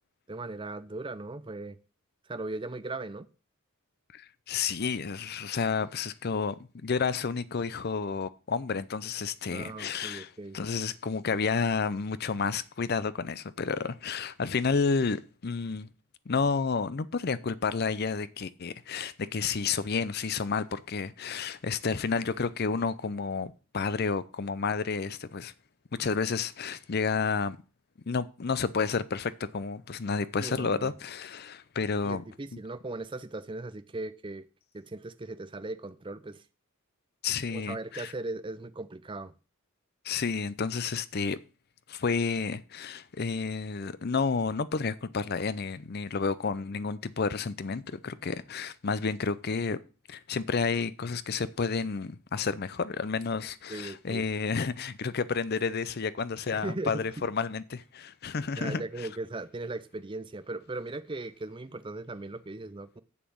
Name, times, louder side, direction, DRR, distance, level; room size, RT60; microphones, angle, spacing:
voice 1, 0.3-1.8 2.3-3.3 9.5-10.6 30.4-30.9 32.0-34.5 34.7-36.4 37.5-39.3 53.7-54.2 56.5-57.3 58.6-63.0, right 2 dB, 25° right, 0.6 m, -38 dB
voice 2, 4.1-15.9 16.3-25.5 26.0-27.6 28.1-32.2 37.2-38.1 40.0-41.4 41.9-49.8 50.1-59.1, left 5 dB, 45° left, 0.6 m, -31 dB
7.4 x 7.0 x 6.2 m
head